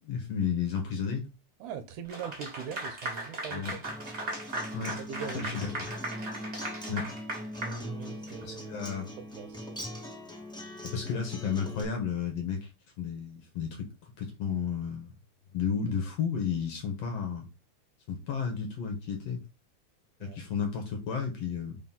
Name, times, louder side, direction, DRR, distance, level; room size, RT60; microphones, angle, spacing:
voice 1, 0.0-1.3 3.5-3.8 4.7-5.0 5.3-5.7 6.9-7.1 8.4-9.1 10.8-12.7 13.0-13.9 14.2-15.1 15.5-17.5 18.1-19.4 20.2-21.8, left 6 dB, 60° left, 1.9 m, -32 dB
voice 2, 1.6-3.6 4.8-5.6 7.6-9.7 20.2-20.4, right 7 dB, 75° right, 2.1 m, -42 dB
Clapping / Applause, 2.1-8.4, right 2 dB, 30° right, 1.3 m, -38 dB
Acoustic guitar, 3.8-11.8, equal, 5° left, 0.5 m, -41 dB
4.9 x 3.7 x 5.6 m
omnidirectional pair, 3.7 m